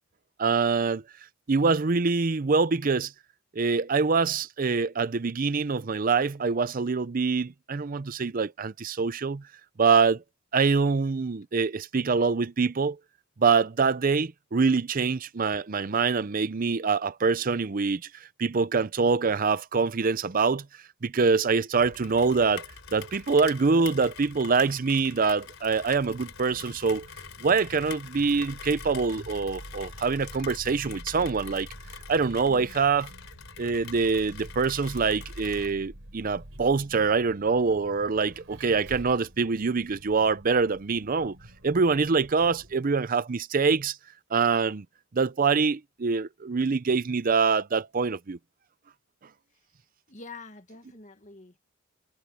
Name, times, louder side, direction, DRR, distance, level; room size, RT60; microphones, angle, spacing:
voice 1, 0.4-1.0 1.5-3.1 3.5-9.4 9.8-10.2 10.5-13.0 13.4-20.6 21.0-22.6 22.9-27.1 27.4-31.7 32.1-33.1 33.6-41.4 41.6-44.0 44.3-44.8 45.1-48.4, right 4 dB, 40° right, 0.5 m, -25 dB
Rain, 21.8-35.7, left 6 dB, 75° left, 3.7 m, -45 dB
Vehicle, 25.8-42.7, right 1 dB, 70° right, 3.7 m, -47 dB
voice 2, 50.1-51.6, left 3 dB, 35° left, 2.0 m, -46 dB
head